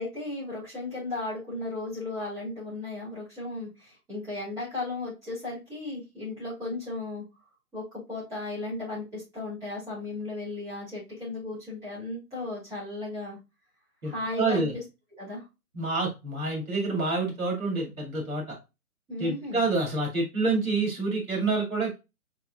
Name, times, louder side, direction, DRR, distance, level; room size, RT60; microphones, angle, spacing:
voice 1, 0.0-7.2 7.7-13.4 14.0-14.8 15.2-15.4 19.1-19.6, left 2 dB, 5° right, -10 dB, 2.9 m, -35 dB
voice 2, 14.0-14.8 15.7-18.6 19.2-22.0, right 3 dB, 65° right, -1 dB, 2.3 m, -28 dB
4.6 x 4.5 x 2.4 m, 0.26 s
figure-of-eight pair, 140°, 45 cm